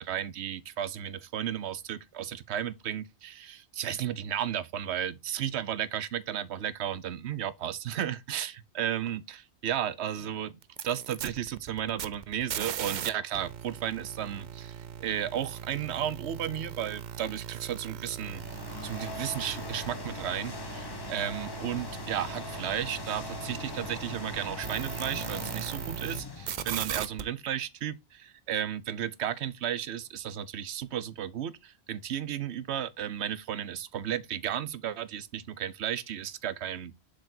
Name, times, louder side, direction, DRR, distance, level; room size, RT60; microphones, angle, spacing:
voice 1, 0.0-10.6 10.8-18.4 18.8-36.9, right 10 dB, 75° right, 0.9 m, -34 dB
sound 1, 10.6-13.1 13.3-26.2 26.5-27.2, right 9 dB, 55° right, 0.6 m, -39 dB
sound 2, 18.1-27.2, left 3 dB, 25° left, 0.8 m, -41 dB
7.3 x 5.1 x 2.6 m
omnidirectional pair, 1.1 m